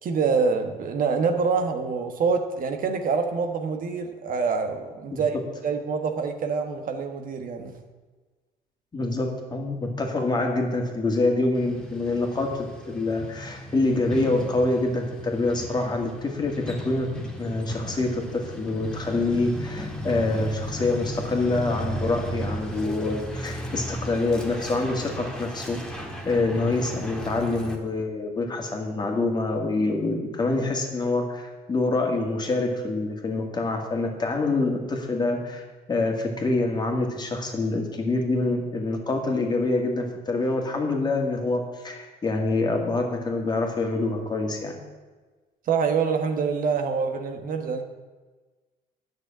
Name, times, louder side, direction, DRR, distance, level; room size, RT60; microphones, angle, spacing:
voice 1, 0.0-5.4 5.6-7.7 45.7-47.8, right 5 dB, 55° right, 6 dB, 1.3 m, -26 dB
voice 2, 8.9-17.1 17.4-44.8, left 2 dB, 25° left, 2 dB, 2.1 m, -26 dB
Truck, 11.5-27.7, equal, 5° left, 1.7 m, -35 dB
9.9 x 6.5 x 8.8 m, 1.3 s
cardioid pair, 110°, 17 cm